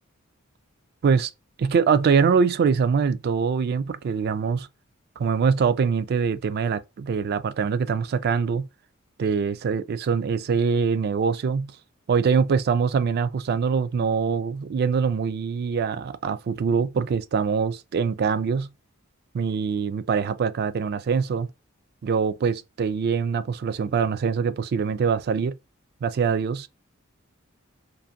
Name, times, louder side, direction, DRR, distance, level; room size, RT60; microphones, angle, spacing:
voice 1, 1.6-4.7 5.2-8.7 9.2-11.7 12.1-18.7 19.3-21.5 22.0-25.6 26.0-26.7, right 6 dB, 50° right, 0.3 m, -23 dB
2.6 x 2.5 x 2.6 m
head